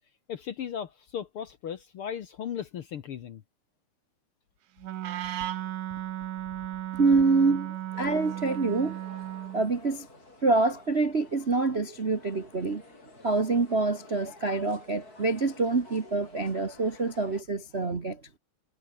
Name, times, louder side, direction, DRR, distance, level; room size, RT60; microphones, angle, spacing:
voice 1, 0.3-3.4, left 8 dB, 60° left, 1.6 m, -36 dB
Wind instrument woodwind instrument, 4.8-9.7, right 12 dB, 80° right, 2.8 m, -35 dB
voice 2, 6.9-9.0 9.5-10.1 10.4-12.8 13.2-18.4, right 3 dB, 35° right, 1.0 m, -26 dB
sound 1, 7.9-17.4, left 3 dB, 30° left, 5.0 m, -52 dB
omnidirectional pair, 3.5 m